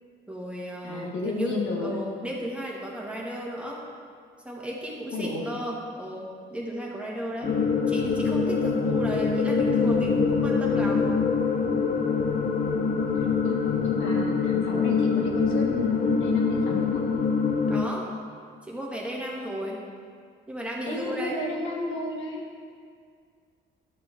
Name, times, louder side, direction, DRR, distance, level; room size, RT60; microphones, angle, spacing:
voice 1, 0.3-3.8 4.4-7.5 7.9-11.2 17.7-18.1 18.6-19.8 20.5-21.4, right 1 dB, 5° right, -4 dB, 1.9 m, -34 dB
voice 2, 0.8-2.1 5.1-5.4 13.1-17.1 20.8-22.4, left 2 dB, 80° left, -2 dB, 1.7 m, -32 dB
sound 1, 7.4-17.9, left 5 dB, 45° left, 0.8 m, -24 dB
12.5 x 6.7 x 3.7 m, 2.1 s
cardioid pair, 90°, 20 cm